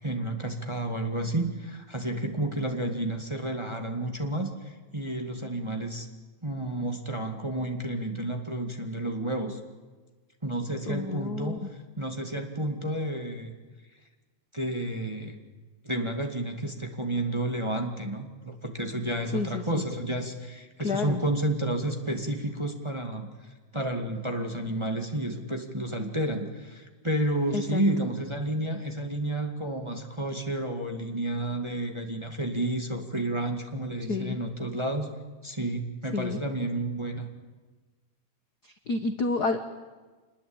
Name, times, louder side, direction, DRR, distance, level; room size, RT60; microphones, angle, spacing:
voice 1, 0.0-6.1 6.4-9.6 10.4-11.6 12.0-13.5 14.5-15.4 15.8-23.3 23.7-35.1 35.4-37.3, right 1 dB, 10° right, 3 dB, 1.7 m, -31 dB
voice 2, 10.9-11.6 19.3-19.8 20.8-21.2 27.5-27.8 34.1-34.4 36.1-36.4 38.9-39.6, left 4 dB, 50° left, 8 dB, 1.2 m, -29 dB
26.0 x 21.0 x 8.9 m, 1.3 s
omnidirectional pair, 3.4 m